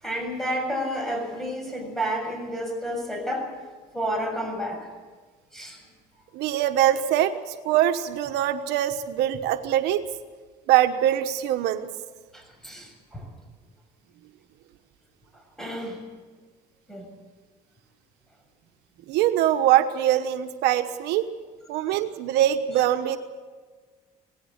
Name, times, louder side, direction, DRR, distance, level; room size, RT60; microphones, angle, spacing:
voice 1, 0.0-3.5 3.9-4.9 5.5-5.8 12.3-13.3 15.6-16.0 16.9-17.1, equal, ahead, 3 dB, 6.8 m, -30 dB
voice 2, 6.3-7.4 7.6-10.0 10.7-11.9 19.1-21.3 21.7-23.2, right 12 dB, 90° right, 8 dB, 1.1 m, -23 dB
19.0 x 16.5 x 9.5 m, 1.4 s
cardioid pair, 110°, 17 cm